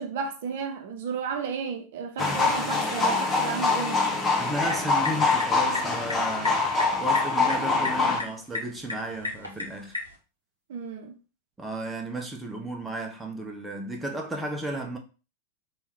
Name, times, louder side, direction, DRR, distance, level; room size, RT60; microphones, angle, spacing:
voice 1, 0.0-4.0 10.7-11.1, right 6 dB, 55° right, 0.8 m, -33 dB
sound 1, 2.2-8.2, left 3 dB, 15° left, 1.0 m, -24 dB
voice 2, 4.2-10.0 11.6-15.0, right 1 dB, 10° right, 0.9 m, -34 dB
sound 2, 4.5-10.2, left 3 dB, 85° left, 1.1 m, -37 dB
3.5 x 3.1 x 4.5 m
figure-of-eight pair, 90°, 0 cm